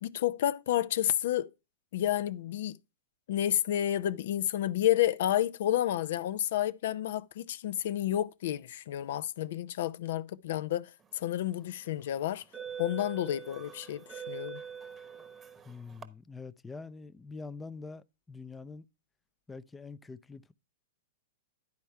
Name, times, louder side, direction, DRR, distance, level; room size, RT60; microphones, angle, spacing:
voice 1, 0.0-1.5 1.9-2.8 3.3-12.4 12.8-14.6, left 12 dB, 65° left, 0.5 m, -30 dB
sound 1, 11.3-11.5 12.3-16.1, right 7 dB, 20° right, 1.0 m, -44 dB
voice 2, 15.6-18.9 19.5-20.5, left 4 dB, 10° left, 0.5 m, -45 dB
10.5 x 4.4 x 4.6 m
hypercardioid pair, 125°, 0 cm